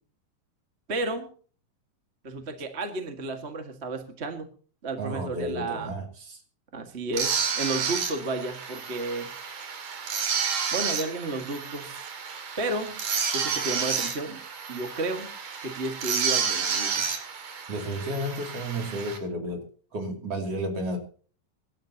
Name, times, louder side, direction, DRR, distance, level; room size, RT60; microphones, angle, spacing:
voice 1, 0.9-1.3 2.2-4.5 4.8-5.9 6.7-9.3 10.7-12.2 12.6-12.9 13.3-14.4 14.7-15.3 15.6-17.0, right 2 dB, 25° right, 5 dB, 1.5 m, -32 dB
voice 2, 5.0-6.4 17.7-21.0, right 1 dB, 45° right, 3 dB, 3.8 m, -32 dB
sound 1, 7.1-19.2, right 6 dB, 70° right, 4.0 m, -30 dB
26.0 x 12.5 x 2.9 m, 0.42 s
omnidirectional pair, 3.9 m